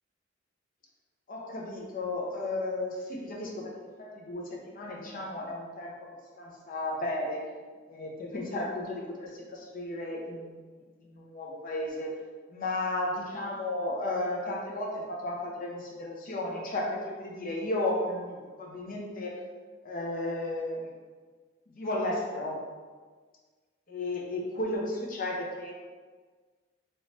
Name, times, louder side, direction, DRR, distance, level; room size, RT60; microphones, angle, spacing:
voice 1, 1.3-6.1 6.4-7.5 7.9-12.1 12.5-19.4 19.8-20.9 21.7-22.6 23.9-25.7, left 1 dB, 45° left, -2 dB, 0.7 m, -34 dB
3.1 x 2.8 x 3.1 m, 1.5 s
head